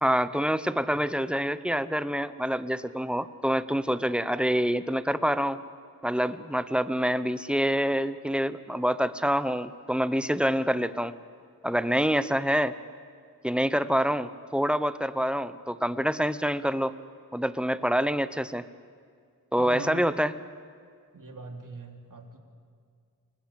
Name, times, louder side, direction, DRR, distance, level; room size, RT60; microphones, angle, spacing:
voice 1, 0.0-5.6 6.0-11.1 11.6-12.7 13.4-16.9 17.3-18.6 19.5-20.4, equal, 5° right, 13 dB, 0.9 m, -26 dB
voice 2, 19.6-20.0 21.1-22.4, right 3 dB, 60° right, 3 dB, 3.3 m, -41 dB
28.5 x 20.0 x 8.6 m, 2.2 s
wide cardioid pair, 80°, 36 cm